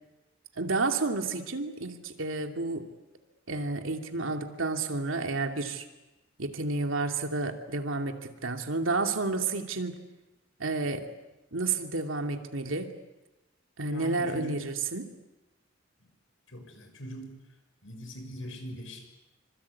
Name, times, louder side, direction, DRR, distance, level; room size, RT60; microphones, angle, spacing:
voice 1, 0.6-2.9 3.5-5.8 6.4-10.0 10.6-11.1 11.5-12.9 13.8-15.1, right 3 dB, 80° right, 5 dB, 2.6 m, -30 dB
voice 2, 13.8-14.6 16.0-16.1 16.5-17.4 17.8-19.1, equal, 75° left, 5 dB, 6.4 m, -41 dB
26.5 x 26.0 x 8.5 m, 1.0 s
head